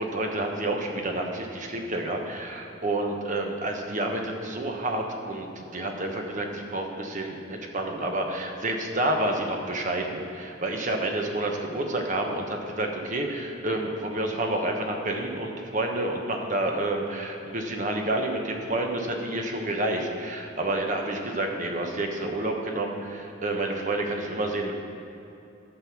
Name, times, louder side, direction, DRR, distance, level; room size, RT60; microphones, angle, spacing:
voice 1, 0.0-24.7, right 1 dB, 40° right, 2 dB, 1.1 m, -29 dB
11.5 x 6.8 x 6.0 m, 2.9 s
head